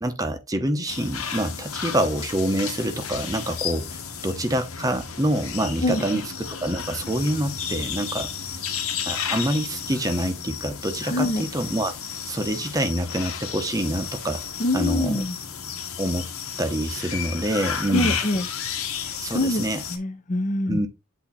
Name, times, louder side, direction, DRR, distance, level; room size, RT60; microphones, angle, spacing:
voice 1, 0.0-6.2 6.6-8.3 9.1-11.9 12.3-14.4 14.7-15.2 16.0-16.2 16.6-18.2 19.2-19.8 20.7-20.9, right 1 dB, 15° right, 0.8 m, -26 dB
sound 1, 0.9-20.0, left 7 dB, 85° left, 1.5 m, -33 dB
voice 2, 5.8-6.2 11.0-11.5 14.6-15.4 17.9-18.5 19.0-19.6 19.9-20.8, left 1 dB, 35° left, 0.7 m, -25 dB
8.4 x 2.8 x 4.2 m
head